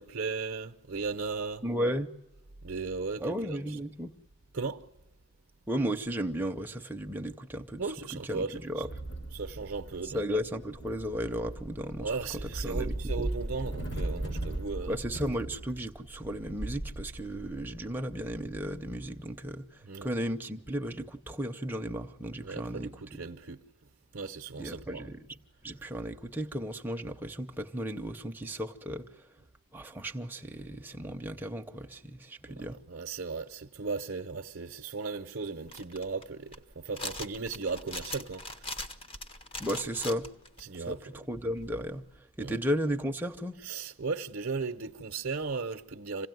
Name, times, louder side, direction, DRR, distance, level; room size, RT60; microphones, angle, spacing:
voice 1, 0.0-1.6 2.6-3.3 3.7-3.8 4.5-4.8 7.8-8.9 9.3-10.3 12.0-15.0 19.8-20.1 22.4-23.6 24.1-25.1 32.6-38.7 40.6-41.0 42.4-42.6 43.6-46.3, right 4 dB, 55° right, 0.7 m, -36 dB
voice 2, 1.6-2.1 3.2-4.1 5.7-7.8 8.2-8.9 10.0-12.2 12.4-13.3 14.9-23.2 24.6-25.4 25.6-29.0 29.7-32.8 39.6-40.3 40.7-42.0 42.4-43.6, equal, 10° right, 0.7 m, -34 dB
sound 1, 8.8-19.0, right 1 dB, 50° left, 1.9 m, -38 dB
sound 2, 35.7-40.6 41.3-42.2, left 2 dB, 25° left, 0.9 m, -41 dB
26.5 x 17.0 x 9.3 m
head